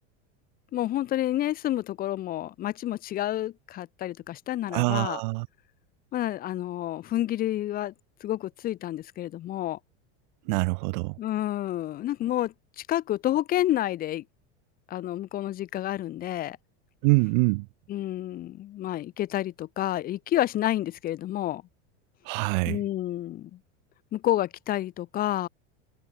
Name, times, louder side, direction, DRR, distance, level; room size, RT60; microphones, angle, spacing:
voice 1, 0.7-5.2 6.1-7.9 8.2-9.8 11.2-14.2 14.9-16.6 17.9-21.6 22.7-23.6 24.1-25.5, left 13 dB, 25° left, 2.3 m, -29 dB
voice 2, 4.7-5.5 10.5-11.2 17.0-17.7 22.2-22.8, right 30 dB, 45° right, 0.8 m, -25 dB
supercardioid pair, 175°, 34 cm